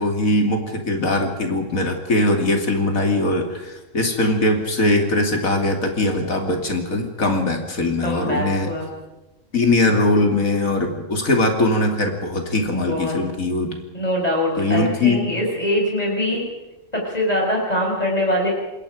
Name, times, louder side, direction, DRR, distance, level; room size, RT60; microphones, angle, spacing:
voice 1, 0.0-8.7 9.5-13.8 14.6-15.3, left 2 dB, 85° left, 3 dB, 3.2 m, -21 dB
voice 2, 8.0-8.9 12.7-13.2 13.9-16.4 16.9-18.5, left 1 dB, 30° left, -1 dB, 5.9 m, -23 dB
27.5 x 21.5 x 5.1 m, 1.0 s
omnidirectional pair, 1.4 m